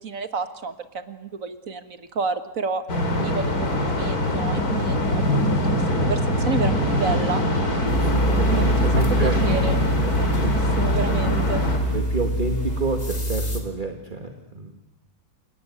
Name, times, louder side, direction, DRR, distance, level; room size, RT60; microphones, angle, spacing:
voice 1, 0.0-2.8 3.2-7.4 8.5-8.9 9.2-9.9 10.2-11.6, right 4 dB, 60° right, 9 dB, 2.0 m, -30 dB
sound 1, 2.9-11.8, left 1 dB, 75° left, 4.0 m, -23 dB
sound 2, 6.3-13.7, right 1 dB, 80° right, 5.4 m, -34 dB
sound 3, 7.9-13.6, equal, 30° left, 3.2 m, -25 dB
voice 2, 8.0-9.4 10.0-10.5 11.9-14.7, right 3 dB, 30° right, 4 dB, 2.0 m, -29 dB
28.0 x 18.5 x 9.6 m, 0.91 s
omnidirectional pair, 1.6 m